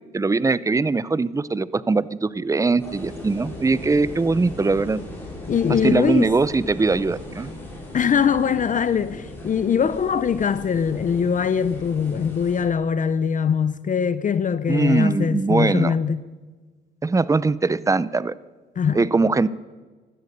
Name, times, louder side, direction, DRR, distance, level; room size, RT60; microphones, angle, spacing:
voice 1, 0.1-5.0 5.7-7.5 14.7-15.9 17.0-18.3 18.9-19.5, right 3 dB, 15° right, 0.6 m, -21 dB
sound 1, 2.8-12.6, left 1 dB, 10° left, 6.8 m, -38 dB
voice 2, 5.5-6.3 7.9-16.2 18.8-19.0, left 7 dB, 40° left, 0.6 m, -22 dB
15.5 x 12.5 x 6.8 m
cardioid pair, 90°, 20 cm